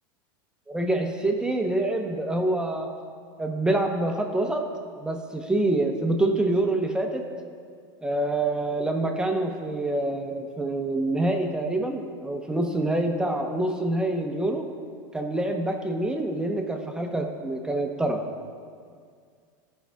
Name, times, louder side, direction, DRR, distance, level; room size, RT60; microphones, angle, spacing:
voice 1, 0.7-2.9 3.4-4.7 5.0-7.3 8.0-14.7 15.1-18.2, right 2 dB, 5° right, 3 dB, 0.8 m, -26 dB
14.5 x 5.6 x 2.3 m, 2.1 s
supercardioid pair, 115°, 12 cm